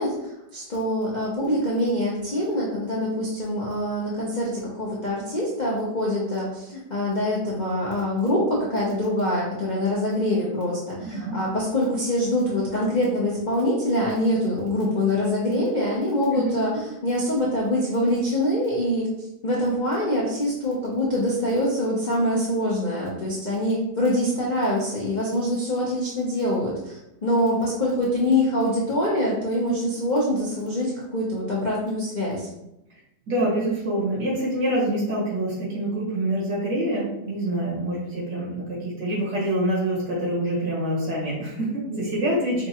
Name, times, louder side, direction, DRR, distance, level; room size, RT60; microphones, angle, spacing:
voice 1, 0.0-32.5, left 1 dB, 55° left, -5 dB, 0.5 m, -24 dB
voice 2, 11.0-11.4 16.3-16.5 33.3-42.7, right 1 dB, 75° right, -6 dB, 2.3 m, -26 dB
5.1 x 2.3 x 2.8 m, 0.85 s
omnidirectional pair, 1.9 m